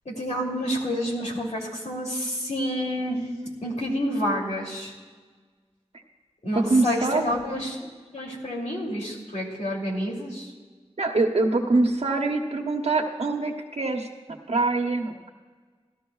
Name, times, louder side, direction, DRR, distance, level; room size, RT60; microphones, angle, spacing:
voice 1, 0.0-3.3 3.6-4.9 6.4-10.5, equal, 80° left, -3 dB, 2.8 m, -29 dB
voice 2, 6.5-7.2 11.0-15.3, right 3 dB, 65° right, 2 dB, 1.0 m, -24 dB
17.5 x 13.5 x 2.4 m, 1.4 s
wide cardioid pair, 55°, 11 cm